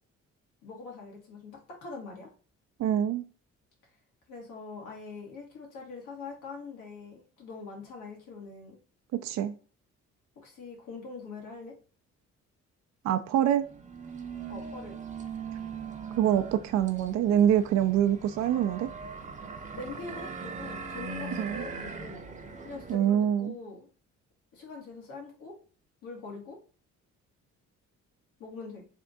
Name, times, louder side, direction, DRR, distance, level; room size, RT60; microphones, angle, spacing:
voice 1, 0.6-2.3 4.3-8.8 10.4-11.7 14.5-15.0 19.7-22.2 22.6-23.9 24.5-25.5 26.0-26.6 28.4-28.9, left 4 dB, 85° left, -1 dB, 1.6 m, -43 dB
voice 2, 2.8-3.2 9.1-9.5 13.0-13.6 16.2-18.9 21.4-21.6 22.9-23.6, right 10 dB, 65° right, 8 dB, 0.4 m, -25 dB
sound 1, 13.6-23.0, right 5 dB, 25° right, 0.6 m, -40 dB
3.5 x 2.5 x 3.8 m, 0.40 s
cardioid pair, 90°, 30 cm